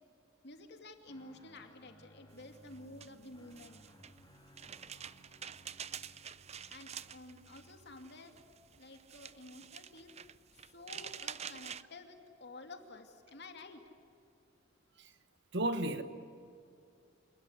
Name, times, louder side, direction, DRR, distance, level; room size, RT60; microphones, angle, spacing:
voice 1, 0.4-3.9 6.7-8.4 8.7-10.2 10.5-13.8, left 2 dB, 55° left, 2.5 m, -52 dB
Guitar, 1.0-8.7, equal, 20° left, 3.1 m, -61 dB
sound 1, 2.4-11.8, right 8 dB, 30° right, 0.6 m, -48 dB
voice 2, 15.5-16.0, right 1 dB, 60° right, 1.4 m, -33 dB
27.0 x 20.0 x 9.8 m
head